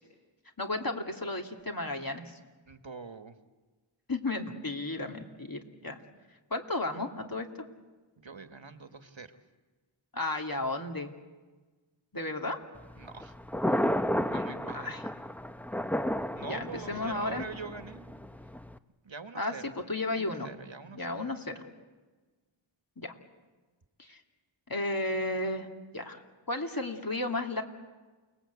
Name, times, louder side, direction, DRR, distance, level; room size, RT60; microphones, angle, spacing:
voice 1, 0.6-2.4 4.1-6.0 6.5-7.5 10.1-11.1 12.1-12.6 14.7-15.0 16.5-17.4 19.3-20.5 20.9-21.7 23.0-23.1 24.0-24.2 24.7-25.7 25.9-27.6, left 2 dB, 45° left, 3 dB, 2.6 m, -33 dB
voice 2, 2.7-3.3 8.2-9.3 13.0-13.3 13.7-13.8 14.3-15.0 16.4-18.1 19.0-19.6 20.1-21.1, right 4 dB, 65° right, 9 dB, 1.6 m, -44 dB
Thunder, 12.7-18.8, equal, 5° left, 0.8 m, -33 dB
29.0 x 19.5 x 8.3 m, 1.3 s
wide cardioid pair, 40°, 50 cm